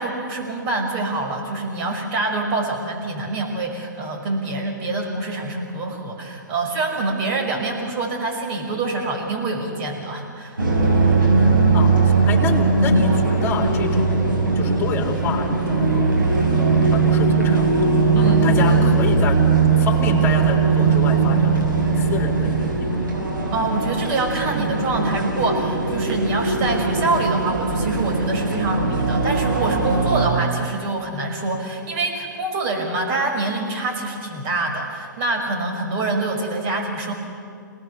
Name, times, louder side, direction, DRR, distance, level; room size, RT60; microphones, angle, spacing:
voice 1, 0.0-10.6 18.1-18.5 23.5-37.1, right 2 dB, 40° right, 1 dB, 5.7 m, -25 dB
sound 1, 10.6-30.2, right 4 dB, 85° right, 6.7 m, -19 dB
voice 2, 11.7-19.4 19.7-23.0, left 5 dB, 20° left, 2 dB, 3.6 m, -29 dB
28.0 x 19.0 x 7.0 m, 2.3 s
figure-of-eight pair, 115°, 11 cm